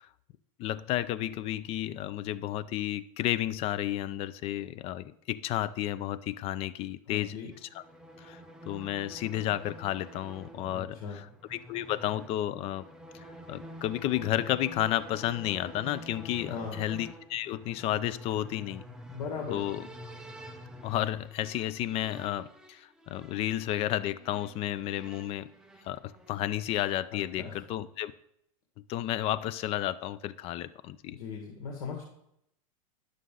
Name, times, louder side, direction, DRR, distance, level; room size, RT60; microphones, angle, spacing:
voice 1, 0.6-7.8 8.2-8.4 8.7-12.9 13.5-18.8 19.5-19.9 20.8-25.5 25.8-28.1 28.9-31.2, left 13 dB, 30° left, 16 dB, 0.4 m, -32 dB
voice 2, 7.1-7.5 10.7-11.2 16.5-16.8 19.1-19.6 27.1-27.6 31.1-32.0, left 6 dB, 85° left, 0 dB, 1.9 m, -38 dB
sound 1, 7.5-26.6, equal, 5° right, 0.7 m, -48 dB
11.0 x 6.5 x 3.8 m, 0.76 s
supercardioid pair, 145°, 19 cm